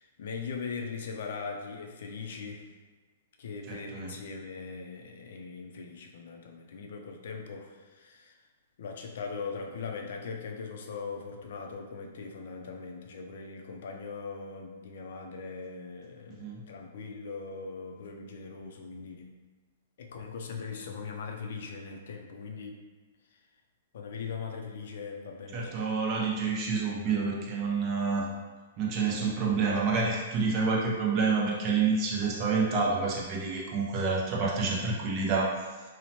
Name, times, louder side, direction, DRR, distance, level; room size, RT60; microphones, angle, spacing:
voice 1, 0.0-2.7 3.4-8.4 8.8-19.4 20.0-22.8 23.9-25.8, left 5 dB, 70° left, 2 dB, 0.4 m, -40 dB
voice 2, 3.7-4.1 16.4-16.6 25.5-28.3 28.8-35.5, right 4 dB, 35° right, -2 dB, 0.6 m, -28 dB
2.9 x 2.0 x 2.8 m, 1.3 s
hypercardioid pair, 140°, 0 cm